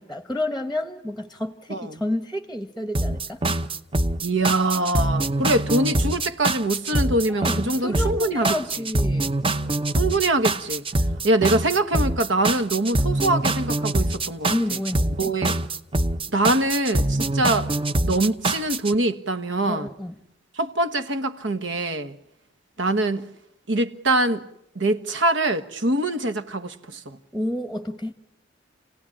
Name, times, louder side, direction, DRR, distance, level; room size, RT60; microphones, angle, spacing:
voice 1, 0.0-3.4 7.3-9.3 14.4-15.3 19.7-20.2 27.3-28.1, left 1 dB, ahead, 1.1 m, -30 dB
sound 1, 2.9-18.9, right 2 dB, 30° right, 0.9 m, -24 dB
voice 2, 4.2-8.5 10.0-10.8 11.2-14.5 15.2-15.5 16.3-17.7 18.0-19.9 20.6-22.2 22.8-23.2 23.7-24.4 24.7-27.2, right 2 dB, 70° right, 1.4 m, -23 dB
28.0 x 17.5 x 10.0 m
head